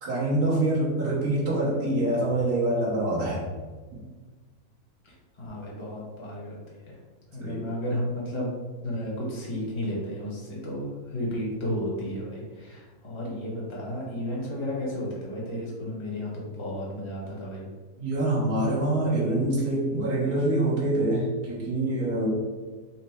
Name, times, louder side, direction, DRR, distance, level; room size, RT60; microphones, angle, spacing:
voice 1, 0.0-3.5 3.9-4.0 7.4-7.6 18.0-22.3, right 1 dB, 80° right, -7 dB, 1.6 m, -25 dB
voice 2, 5.0-6.6 6.9-7.0 7.3-8.5 8.8-17.7, equal, 20° left, -5 dB, 0.9 m, -33 dB
4.3 x 2.1 x 4.3 m, 1.4 s
omnidirectional pair, 1.6 m